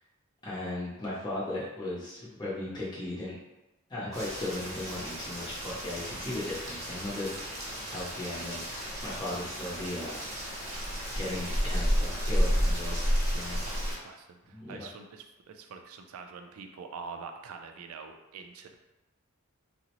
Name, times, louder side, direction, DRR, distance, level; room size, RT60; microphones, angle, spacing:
voice 1, 0.4-3.4 3.9-7.4 7.9-13.6 14.5-14.9, left 1 dB, 20° left, -7 dB, 0.6 m, -37 dB
Rain, 4.1-14.0, equal, 15° right, 0.7 m, -32 dB
voice 2, 13.5-18.8, right 5 dB, 80° right, 5 dB, 0.3 m, -45 dB
3.7 x 2.0 x 2.9 m, 1.0 s
head